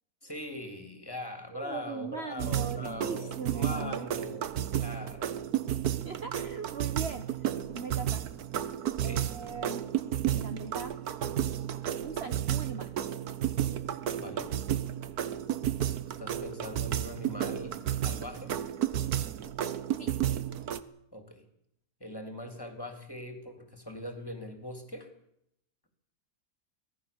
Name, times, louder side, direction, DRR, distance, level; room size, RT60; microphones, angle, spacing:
voice 1, 0.2-4.4 4.8-5.3 9.0-9.2 14.2-14.5 16.1-18.6 21.1-21.5 22.0-25.1, left 1 dB, 15° left, 6 dB, 3.5 m, -41 dB
voice 2, 1.5-4.1 5.5-7.4 7.7-8.3 9.0-9.9 10.3-11.0 12.0-12.9 20.0-20.2, right 5 dB, 45° right, 8 dB, 1.2 m, -40 dB
sound 1, 2.4-20.8, right 10 dB, 65° right, 1.5 m, -32 dB
25.0 x 18.0 x 7.2 m, 0.76 s
omnidirectional pair, 1.8 m